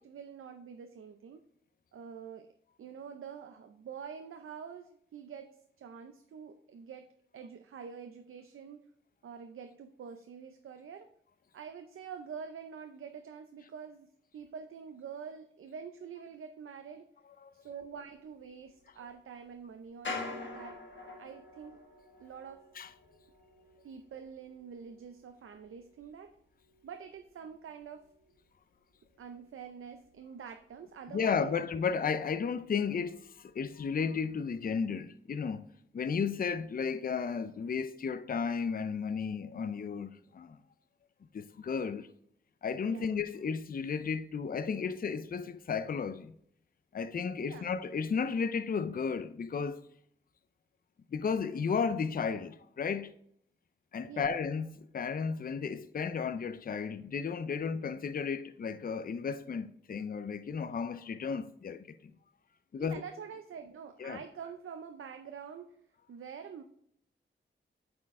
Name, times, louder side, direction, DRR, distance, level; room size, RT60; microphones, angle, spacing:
voice 1, 0.0-1.4 1.9-2.5 2.8-8.9 9.2-11.1 11.5-17.1 17.5-20.8 21.2-21.8 22.2-22.7 23.8-26.3 26.8-28.1 29.2-31.6 42.9-43.1 47.5-47.6 54.1-54.3 62.8-65.8 66.1-66.6, right 6 dB, 85° right, 0.5 m, -46 dB
sound 1, 17.9-29.6 29.9-31.4 31.7-31.8 32.2-32.7 33.0-34.2 34.7-34.8, left 3 dB, 65° left, 1.6 m, -48 dB
voice 2, 31.1-35.7 35.9-40.6 41.3-42.1 42.6-46.3 46.9-49.8 51.1-53.1 53.9-62.0 62.7-63.0 64.0-64.2, left 6 dB, 45° left, 0.5 m, -33 dB
8.5 x 4.4 x 3.6 m
cardioid pair, 50°, 21 cm